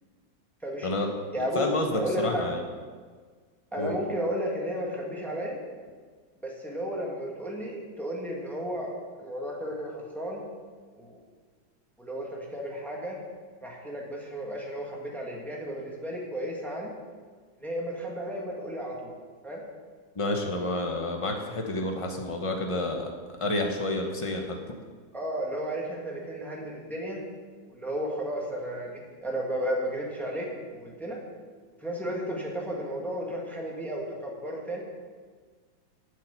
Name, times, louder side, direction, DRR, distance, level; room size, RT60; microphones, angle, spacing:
voice 1, 0.6-1.6 1.9-2.4 3.7-5.6 6.4-8.9 9.2-10.4 10.9-11.2 12.0-13.2 13.6-16.9 17.6-19.1 19.4-19.6 25.1-27.2 27.7-31.2 31.8-34.8, equal, ahead, -2 dB, 1.5 m, -33 dB
voice 2, 1.5-2.6 3.8-4.0 20.2-23.1 23.4-24.6, left 2 dB, 50° left, 2 dB, 0.3 m, -29 dB
8.3 x 6.6 x 8.1 m, 1.5 s
omnidirectional pair, 2.2 m